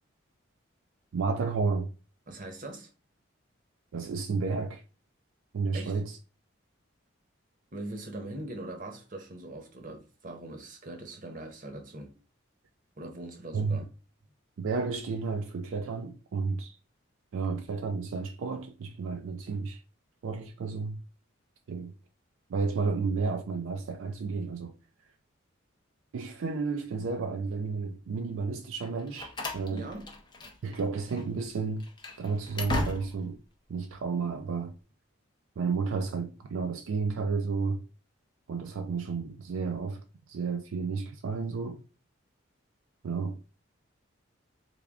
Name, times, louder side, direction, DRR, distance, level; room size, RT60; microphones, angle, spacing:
voice 1, 1.1-1.9 3.9-4.8 5.5-6.1 13.5-13.8 14.6-16.8 17.3-19.8 20.2-21.0 21.7-21.9 22.5-24.7 26.1-29.9 30.6-31.8 32.2-33.4 33.7-34.7 35.6-37.8 38.5-40.0 40.3-41.8 43.0-43.4, right 4 dB, 75° right, 0.4 m, -32 dB
voice 2, 2.3-2.9 5.7-6.0 7.7-12.1 13.0-13.9 29.7-30.1, right 1 dB, 40° right, 0.8 m, -41 dB
Slam, 28.8-30.8 31.1-31.3 31.8-33.4, left 2 dB, 20° left, 0.5 m, -37 dB
3.5 x 2.2 x 3.5 m
head